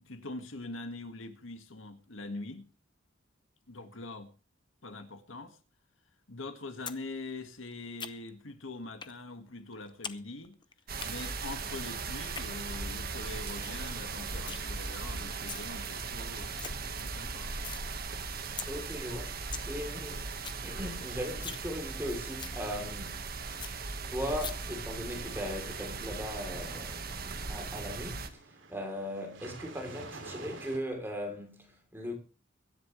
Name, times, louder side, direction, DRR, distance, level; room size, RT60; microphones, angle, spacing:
voice 1, 0.0-2.7 3.7-4.3 4.8-5.6 6.3-10.6 11.0-17.6, left 2 dB, 80° left, 1.9 m, -43 dB
sound 1, 6.9-7.0 7.3-8.4 9.0-9.2 9.5-10.2 10.4-11.1 12.1-12.5 12.9-13.0 13.3-13.4 13.6-13.8 14.1-14.6 15.2-15.7 16.1-16.2 16.4-16.7 17.1-17.8 18.2-18.3 18.6-18.7 19.1-19.2 19.3-19.7 20.0-20.1 20.3-20.6 20.9-21.0 21.3-21.7 22.0-22.1 22.4-22.6 23.0-23.1 23.3-23.4 23.6-23.7 24.4-24.5, left 7 dB, 25° left, 0.7 m, -41 dB
sound 2, 10.9-28.3, right 4 dB, 50° right, 1.5 m, -38 dB
voice 2, 18.7-19.4 19.7-20.3 20.6-23.3 23.8-28.4 28.7-32.1, equal, 10° right, 3.5 m, -38 dB
sound 3, 23.8-30.8, right 3 dB, 70° right, 2.7 m, -51 dB
23.5 x 10.5 x 3.3 m
head